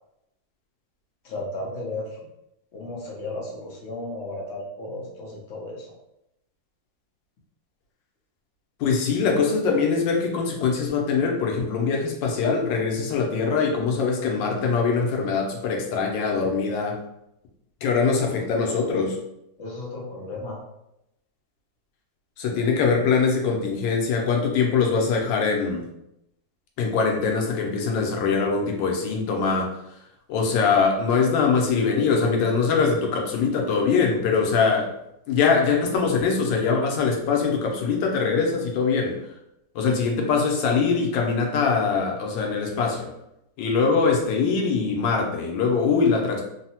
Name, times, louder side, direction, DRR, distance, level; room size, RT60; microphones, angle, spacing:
voice 1, 1.2-2.2 2.7-5.9 18.0-18.4 19.6-20.6, left 2 dB, 55° left, -2 dB, 0.8 m, -34 dB
voice 2, 8.8-17.0 17.8-19.2 22.4-25.8 26.8-29.8 30.3-34.9 35.3-39.2 39.7-43.1 43.6-46.4, left 5 dB, 85° left, 1 dB, 1.3 m, -22 dB
3.6 x 2.0 x 2.8 m, 0.83 s
omnidirectional pair, 2.0 m